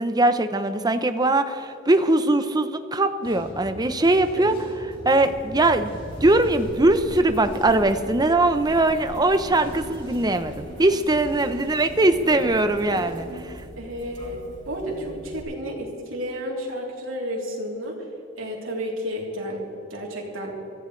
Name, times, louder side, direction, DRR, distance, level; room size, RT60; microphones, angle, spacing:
voice 1, 0.0-4.5 5.0-5.9 6.2-13.5, right 2 dB, 20° right, 9 dB, 0.7 m, -21 dB
sound 1, 3.2-13.3, equal, 25° left, 3.3 m, -41 dB
sound 2, 5.2-15.4, right 1 dB, 60° right, 4.1 m, -41 dB
voice 2, 13.8-18.1 18.4-20.5, equal, 80° right, -2 dB, 3.4 m, -32 dB
23.0 x 15.0 x 3.3 m, 3.0 s
head